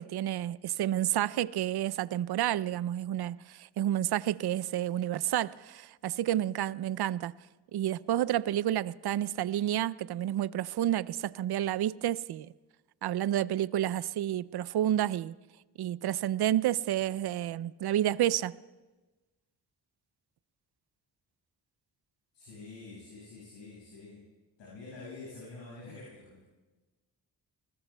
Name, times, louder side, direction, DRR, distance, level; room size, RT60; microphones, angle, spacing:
voice 1, 0.0-7.3 7.7-12.5 13.0-15.4 15.8-18.6, right 12 dB, 60° right, 0.5 m, -30 dB
voice 2, 22.3-24.2 24.6-26.4, left 3 dB, 85° left, 6.1 m, -47 dB
28.5 x 20.5 x 2.3 m
cardioid pair, 50°, 43 cm